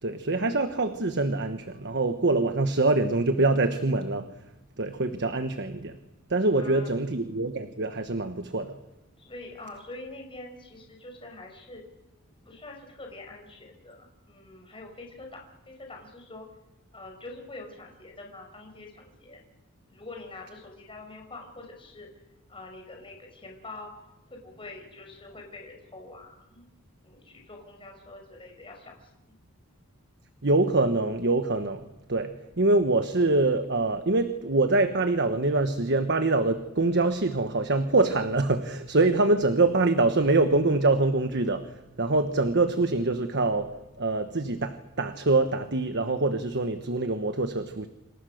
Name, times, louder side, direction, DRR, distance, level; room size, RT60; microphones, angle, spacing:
voice 1, 0.0-4.3 4.8-6.0 6.3-8.8 30.4-47.9, right 2 dB, 55° right, 9 dB, 1.3 m, -25 dB
voice 2, 6.5-7.1 9.2-11.8 12.3-16.5 16.9-19.4 19.9-22.1 22.5-23.9 24.3-26.7 27.0-29.1, left 2 dB, 25° left, 2 dB, 5.8 m, -45 dB
28.0 x 27.0 x 6.6 m, 1.0 s
head